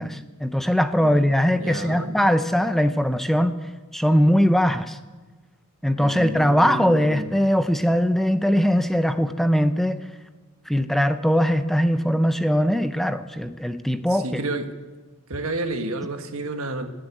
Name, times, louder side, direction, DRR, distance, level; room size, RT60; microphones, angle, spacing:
voice 1, 0.0-3.6 3.9-5.0 5.8-10.0 10.7-14.4, equal, ahead, 10 dB, 0.5 m, -21 dB
voice 2, 1.6-2.1 6.0-7.3 14.1-14.7 15.3-16.9, right 2 dB, 80° right, 6 dB, 1.6 m, -30 dB
19.5 x 7.7 x 9.2 m, 1.3 s
head